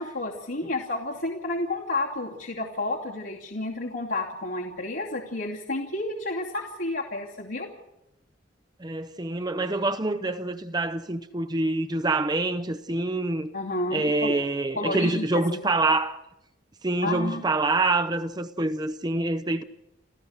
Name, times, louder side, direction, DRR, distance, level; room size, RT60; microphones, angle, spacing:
voice 1, 0.0-7.7 13.5-14.3 14.8-15.6 17.0-17.4, left 2 dB, 80° left, 2.7 m, -31 dB
voice 2, 8.8-13.5 13.9-16.2 16.8-19.6, right 2 dB, 20° right, 0.7 m, -26 dB
29.5 x 14.0 x 6.6 m
head